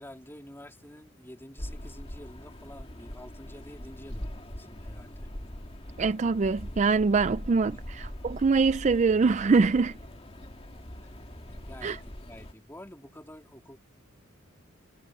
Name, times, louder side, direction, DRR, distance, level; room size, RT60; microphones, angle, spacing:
voice 1, 0.0-5.3 7.7-7.9 10.8-11.1 11.4-13.8, left 1 dB, 10° left, 3.2 m, -49 dB
sound 1, 1.6-12.5, equal, 30° left, 2.1 m, -42 dB
voice 2, 6.0-10.0 11.8-12.0, right 4 dB, 35° right, 0.4 m, -24 dB
head